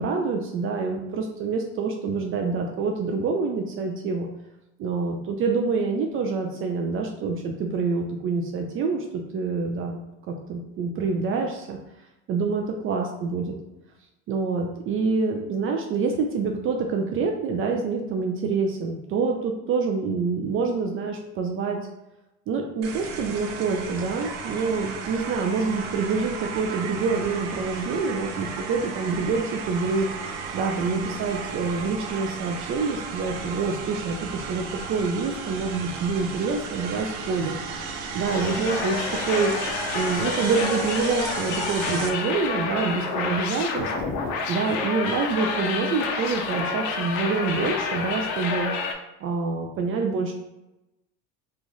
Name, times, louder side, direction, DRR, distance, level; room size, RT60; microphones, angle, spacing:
voice 1, 0.0-4.3 4.8-10.0 10.3-11.8 12.3-13.5 14.3-21.8 22.5-30.1 30.5-37.6 37.9-39.5 39.9-43.9 44.5-48.7 49.2-50.3, right 4 dB, 40° right, 2 dB, 0.4 m, -26 dB
sound 1, 22.8-42.1, right 5 dB, 90° right, 0.6 m, -34 dB
sound 2, 38.3-48.9, left 4 dB, 55° left, 0.7 m, -29 dB
3.1 x 2.4 x 3.9 m, 0.95 s
supercardioid pair, 110°, 34 cm